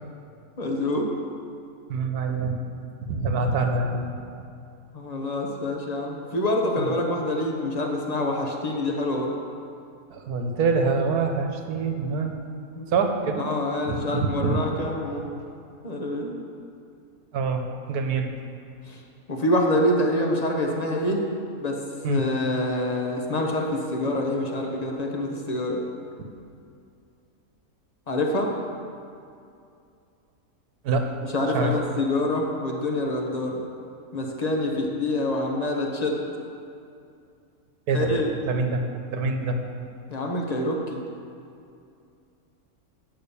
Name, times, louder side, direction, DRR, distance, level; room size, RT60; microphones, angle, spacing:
voice 1, 0.6-1.1 4.9-9.4 12.7-12.9 13.4-15.3 15.8-16.3 18.9-19.0 19.3-21.2 21.6-21.8 22.1-25.8 28.1-28.5 31.3-33.6 34.1-36.2 37.9-38.3 40.1-41.0, left 1 dB, 30° left, 1 dB, 0.9 m, -26 dB
voice 2, 1.9-2.6 3.0-4.2 6.8-6.9 10.1-12.4 12.9-13.5 13.9-14.6 17.3-18.3 22.0-22.3 30.8-31.1 31.5-31.8 37.9-38.1 38.4-38.8 39.1-39.6, right 4 dB, 85° right, 4 dB, 1.4 m, -25 dB
8.6 x 5.8 x 6.9 m, 2.5 s
omnidirectional pair, 1.6 m